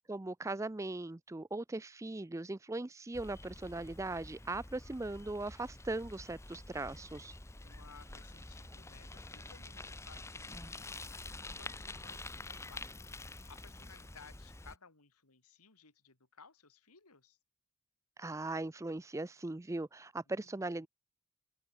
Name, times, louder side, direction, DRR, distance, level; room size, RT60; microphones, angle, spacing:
voice 1, 0.1-7.3 18.2-20.9, right 2 dB, 15° right, 0.4 m, -39 dB
Bicycle, 3.1-14.8, left 2 dB, 10° left, 1.0 m, -48 dB
voice 2, 7.6-12.9 13.4-17.4 20.3-20.9, left 5 dB, 85° left, 3.1 m, -60 dB
open air
head